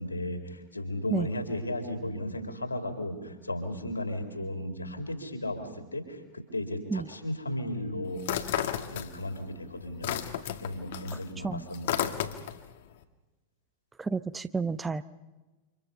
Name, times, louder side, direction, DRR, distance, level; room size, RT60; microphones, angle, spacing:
voice 1, 0.0-8.3 8.9-12.1, left 1 dB, 80° left, 5 dB, 4.2 m, -35 dB
sound 1, 8.2-9.4 9.7-12.7, left 11 dB, 55° left, 1.8 m, -32 dB
voice 2, 14.0-15.0, right 4 dB, 10° right, 14 dB, 0.9 m, -30 dB
29.5 x 27.5 x 5.6 m, 1.1 s
figure-of-eight pair, 90°, 0 cm